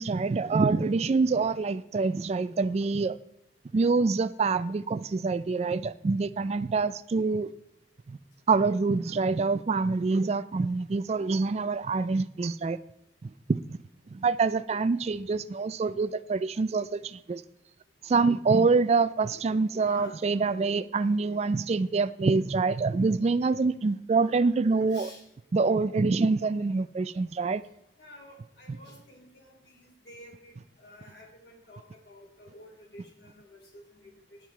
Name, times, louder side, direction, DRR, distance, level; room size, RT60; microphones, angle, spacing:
voice 1, 0.0-3.2 3.7-7.5 8.1-8.2 8.5-12.8 13.2-13.8 14.1-17.4 18.0-25.1 25.5-27.6, right 4 dB, 35° right, 0.3 m, -26 dB
voice 2, 19.8-20.1 24.9-25.2 28.0-30.5 30.8-34.4, left 1 dB, 65° left, 3.1 m, -51 dB
10.0 x 9.4 x 4.4 m
head